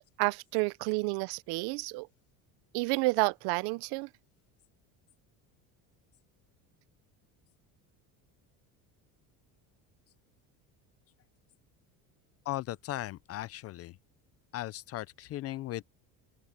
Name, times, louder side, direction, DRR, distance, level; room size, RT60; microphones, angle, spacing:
voice 1, 0.2-2.1 2.7-4.1, right 25 dB, 70° right, 0.6 m, -30 dB
voice 2, 12.5-14.0 14.5-15.8, left 15 dB, 40° left, 0.5 m, -37 dB
open air
cardioid pair, 155°, 39 cm